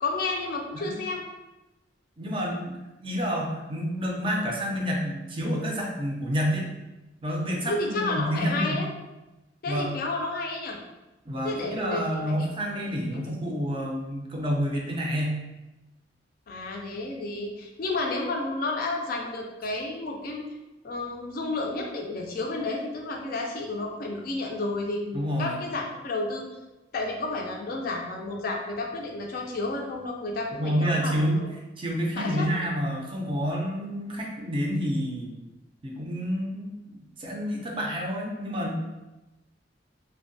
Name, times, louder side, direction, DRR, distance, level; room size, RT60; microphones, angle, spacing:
voice 1, 0.0-1.2 7.7-8.9 9.6-10.8 11.4-12.5 13.1-13.2 16.5-20.5 20.8-26.5 26.9-31.1 32.1-32.5, left 2 dB, 50° left, 0 dB, 0.4 m, -31 dB
voice 2, 2.2-6.7 7.2-8.8 9.7-9.9 11.3-15.4 25.1-25.6 30.6-31.4 31.8-35.3 35.8-38.8, equal, 30° right, -1 dB, 0.4 m, -29 dB
2.6 x 2.1 x 2.6 m, 1.0 s
head